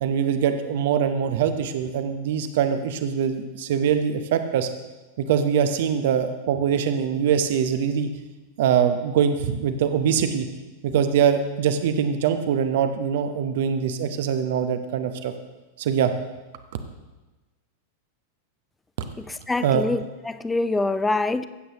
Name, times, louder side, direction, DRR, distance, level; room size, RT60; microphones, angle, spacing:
voice 1, 0.0-4.7 5.2-8.1 8.6-10.5 10.8-15.3 15.8-16.1 19.0-19.1 19.6-19.8, right 8 dB, 55° right, 8 dB, 0.8 m, -23 dB
voice 2, 19.3-21.5, left 2 dB, 10° left, 14 dB, 0.4 m, -25 dB
15.5 x 8.1 x 3.0 m, 1.1 s
figure-of-eight pair, 90°, 0 cm